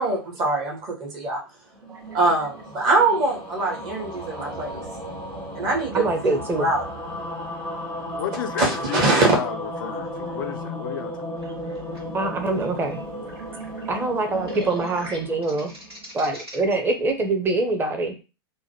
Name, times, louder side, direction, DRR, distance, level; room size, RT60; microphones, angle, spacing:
voice 1, 0.0-1.4 2.1-4.8 5.5-6.8 8.6-9.4, right 2 dB, 40° right, 1.1 m, -23 dB
sound 1, 1.7-16.2, equal, 65° right, 1.3 m, -35 dB
voice 2, 5.9-6.7 12.1-13.0 13.9-15.7 16.1-18.1, right 2 dB, 15° right, 0.7 m, -24 dB
voice 3, 8.1-11.4, left 9 dB, 60° left, 0.4 m, -32 dB
sound 2, 11.4-16.6, right 1 dB, 80° right, 1.7 m, -40 dB
2.9 x 2.2 x 2.9 m
figure-of-eight pair, 90°, 13 cm